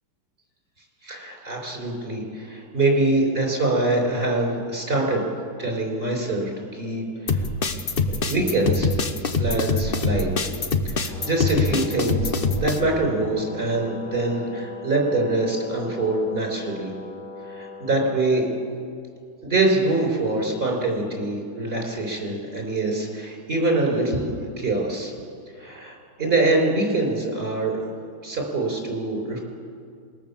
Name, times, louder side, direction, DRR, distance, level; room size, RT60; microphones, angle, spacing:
voice 1, 1.0-5.2 5.6-7.5 8.1-8.9 9.4-10.5 10.8-16.9 17.5-18.5 19.4-25.1 25.5-27.9 28.2-29.4, right 2 dB, 25° right, 1 dB, 5.6 m, -24 dB
sound 1, 7.3-12.8, left 3 dB, 40° left, 0.8 m, -24 dB
Brass instrument, 11.1-18.1, left 4 dB, 75° left, 4.1 m, -39 dB
25.5 x 21.5 x 7.4 m, 2.3 s
omnidirectional pair, 2.3 m